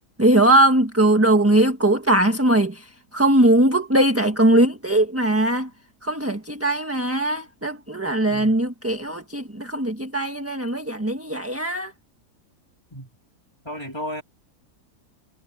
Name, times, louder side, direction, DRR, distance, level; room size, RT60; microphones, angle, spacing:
voice 1, 0.2-2.9 3.1-5.7 6.0-11.9, right 1 dB, 10° right, 1.4 m, -20 dB
voice 2, 13.6-14.2, equal, 15° left, 3.5 m, -33 dB
omnidirectional pair, 1.7 m